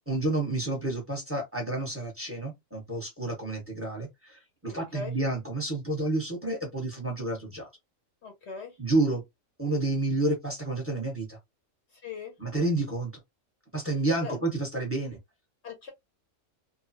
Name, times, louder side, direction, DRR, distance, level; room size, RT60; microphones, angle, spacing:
voice 1, 0.1-7.7 8.8-9.2 9.6-11.4 12.4-13.1 13.7-15.2, right 2 dB, 10° right, 1.1 m, -30 dB
voice 2, 4.6-5.1 8.2-8.8 11.9-12.3 14.2-14.4 15.6-15.9, left 5 dB, 60° left, 0.9 m, -40 dB
2.7 x 2.3 x 2.7 m
omnidirectional pair, 1.4 m